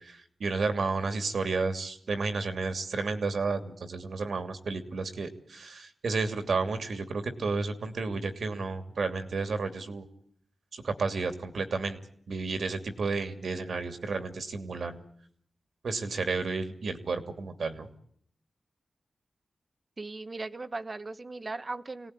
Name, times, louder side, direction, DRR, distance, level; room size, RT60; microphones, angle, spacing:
voice 1, 0.0-10.1 10.7-12.0 12.3-15.0 15.8-17.9, right 4 dB, 75° right, 2.9 m, -32 dB
voice 2, 20.0-22.1, right 3 dB, 40° right, 1.2 m, -38 dB
26.0 x 18.5 x 10.0 m
wide cardioid pair, 80°, 0 cm